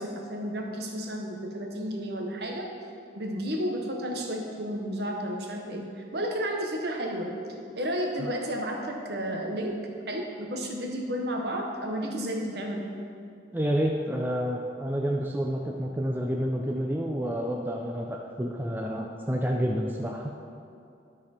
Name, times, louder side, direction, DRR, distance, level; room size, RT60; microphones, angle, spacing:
voice 1, 0.0-2.7 3.1-7.3 7.7-9.8 10.1-12.9, equal, 55° right, 1 dB, 1.0 m, -32 dB
voice 2, 13.5-20.3, equal, 10° right, 0 dB, 0.4 m, -29 dB
12.5 x 4.2 x 4.3 m, 2.5 s
head